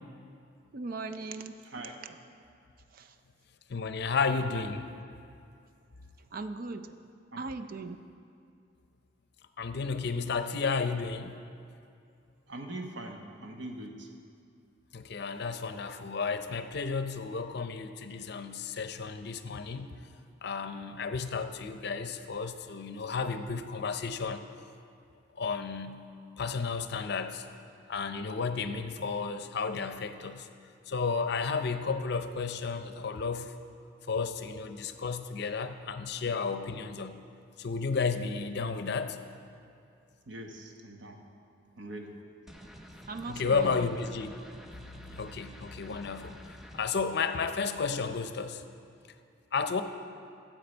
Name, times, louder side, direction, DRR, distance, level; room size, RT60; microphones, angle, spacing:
voice 1, 0.7-1.6 2.9-3.1 6.3-7.0 7.4-8.0 43.1-43.9, right 3 dB, 50° right, 8 dB, 0.5 m, -38 dB
voice 2, 1.6-2.0 7.3-7.4 12.5-14.1 36.2-36.4 40.3-41.2 41.8-42.2, right 1 dB, 75° right, 2 dB, 1.1 m, -42 dB
voice 3, 3.7-4.9 9.6-11.4 14.9-19.9 20.4-24.7 25.4-26.0 26.4-27.5 27.9-30.5 30.9-33.5 34.1-37.1 37.6-39.2 43.3-44.3 45.1-48.6 49.5-49.8, left 5 dB, 60° left, 9 dB, 0.6 m, -32 dB
sound 1, 42.5-46.9, equal, ahead, 0.5 m, -49 dB
14.5 x 7.5 x 4.4 m, 2.5 s
head